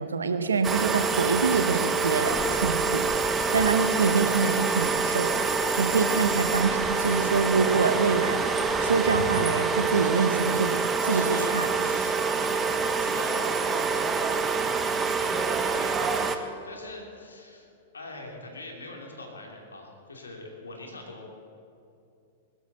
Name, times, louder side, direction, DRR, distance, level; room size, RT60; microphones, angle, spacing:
voice 1, 0.0-3.1 3.5-5.3 5.8-11.7, right 4 dB, 80° right, 9 dB, 1.1 m, -26 dB
sound 1, 0.6-16.4, right 5 dB, 20° right, 1.1 m, -26 dB
sound 2, 2.2-9.0, left 4 dB, 15° left, 0.7 m, -38 dB
voice 2, 11.1-17.7 17.9-21.3, left 2 dB, 85° left, 0 dB, 3.0 m, -44 dB
21.0 x 12.5 x 4.2 m, 2.6 s
figure-of-eight pair, 105°, 0 cm